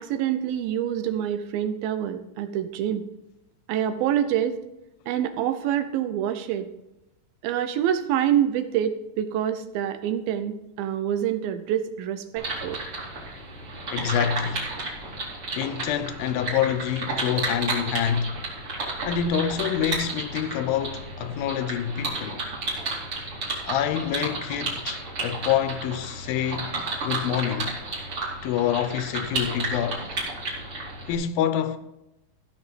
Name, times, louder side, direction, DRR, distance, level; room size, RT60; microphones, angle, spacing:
voice 1, 0.0-3.0 3.7-4.6 5.1-6.7 7.4-12.8, right 10 dB, 80° right, 2.4 m, -26 dB
sound 1, 12.4-31.1, right 2 dB, 35° right, 3.3 m, -32 dB
voice 2, 13.9-14.7 15.5-18.3 19.1-22.4 23.6-26.8 27.0-27.8 28.4-30.2 31.1-31.8, left 9 dB, 80° left, 2.4 m, -27 dB
15.0 x 6.3 x 5.1 m
omnidirectional pair, 4.4 m